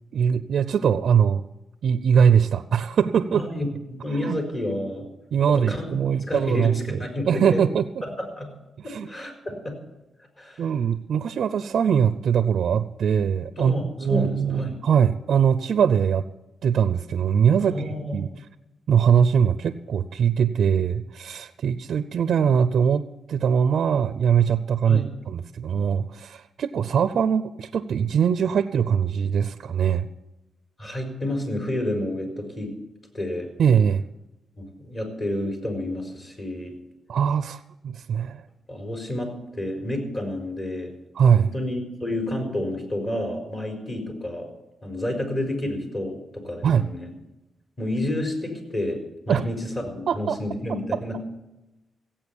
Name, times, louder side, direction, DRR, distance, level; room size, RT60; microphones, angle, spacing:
voice 1, 0.1-1.4 1.8-3.4 4.2-4.4 5.3-7.0 7.3-7.8 8.9-9.1 10.6-16.2 16.6-18.3 18.9-23.0 23.3-30.1 33.6-34.0 37.1-38.4 41.1-41.5 46.6-46.9 49.3-49.4 50.1-50.4, right 7 dB, 70° right, 11 dB, 0.5 m, -22 dB
voice 2, 3.3-5.1 5.6-5.8 6.2-7.6 8.0-8.5 8.8-9.7 10.4-10.6 13.6-14.8 17.6-18.2 24.9-25.1 30.8-32.7 33.1-33.5 34.6-36.7 38.7-40.9 41.4-44.4 44.8-47.1 47.8-49.0 49.3-51.3, left 1 dB, 35° left, 4 dB, 4.5 m, -30 dB
16.0 x 8.8 x 7.0 m, 1.0 s
cardioid pair, 90°, 0 cm